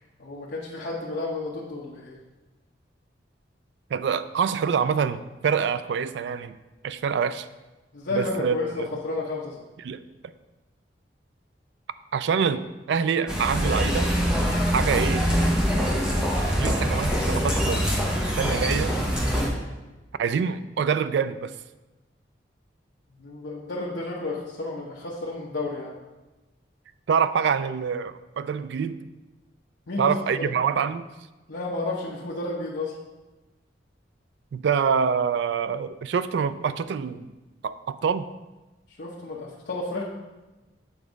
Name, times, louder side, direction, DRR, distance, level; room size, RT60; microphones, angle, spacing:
voice 1, 0.2-2.1 7.9-9.5 23.2-26.0 29.9-30.5 31.5-32.9 39.0-40.1, left 3 dB, 65° left, -4 dB, 0.8 m, -31 dB
voice 2, 3.9-6.6 6.8-7.5 8.1-8.9 9.8-10.0 12.1-14.1 14.6-15.3 16.6-17.9 18.4-18.9 20.2-21.5 27.1-29.0 30.0-31.1 34.5-37.3 37.6-38.3, right 6 dB, 70° right, 13 dB, 0.3 m, -26 dB
sound 1, 13.3-19.5, equal, 5° right, 0.9 m, -24 dB
7.1 x 3.5 x 5.1 m, 1.1 s
head